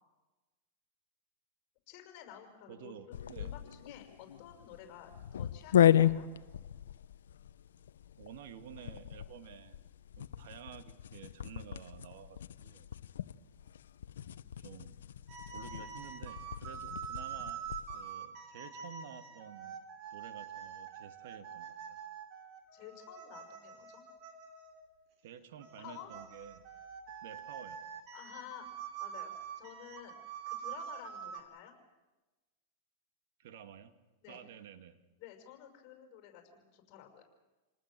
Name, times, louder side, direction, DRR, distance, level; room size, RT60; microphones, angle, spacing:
voice 1, 1.9-2.9 3.4-6.3 22.7-24.0 25.8-26.1 28.1-28.7 29.0-30.2 30.5-31.7 34.2-34.4 35.2-37.2, left 11 dB, 45° left, 4 dB, 6.1 m, -52 dB
voice 2, 2.7-3.5 8.2-9.8 10.2-12.9 14.6-15.0 15.5-17.7 17.9-19.8 20.1-22.0 25.2-26.6 27.2-27.9 33.4-33.9 34.3-35.0, right 9 dB, 65° right, 10 dB, 2.2 m, -51 dB
sound 1, 3.1-18.0, left 10 dB, 85° left, 0.9 m, -34 dB
sound 2, 15.3-24.9 25.6-31.4, right 8 dB, 45° right, 4.0 m, -45 dB
28.0 x 19.5 x 7.7 m, 1.2 s
hypercardioid pair, 130°, 0 cm